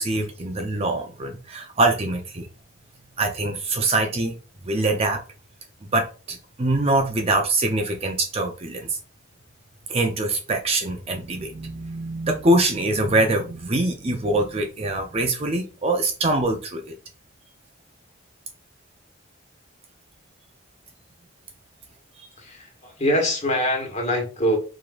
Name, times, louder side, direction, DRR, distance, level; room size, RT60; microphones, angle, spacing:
voice 1, 0.0-2.5 3.2-4.3 4.6-5.2 5.9-9.0 9.9-16.9 22.2-22.3, right 2 dB, 30° right, 4 dB, 0.5 m, -24 dB
voice 2, 22.4-24.6, equal, 35° left, 1 dB, 1.5 m, -24 dB
4.8 x 3.6 x 2.5 m, 0.33 s
head